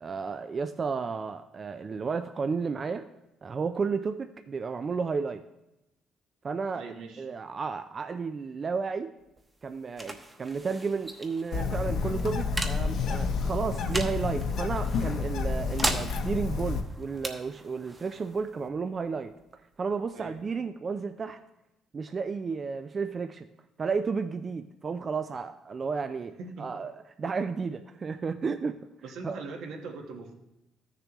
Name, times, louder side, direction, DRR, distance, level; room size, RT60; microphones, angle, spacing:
voice 1, 0.0-3.1 3.4-5.4 6.4-6.8 7.2-9.1 9.6-21.4 21.9-23.5 23.8-28.8 29.2-29.4, right 5 dB, 35° right, 8 dB, 0.4 m, -32 dB
voice 2, 6.7-7.3 20.1-20.4 26.4-26.7 29.0-30.3, right 4 dB, 80° right, 2 dB, 1.4 m, -41 dB
sound 1, 9.2-20.5, right 2 dB, 20° right, 1.0 m, -39 dB
Bird, 11.5-16.8, left 4 dB, 70° left, 1.0 m, -30 dB
13.5 x 6.7 x 3.0 m, 0.92 s
cardioid pair, 100°, 0 cm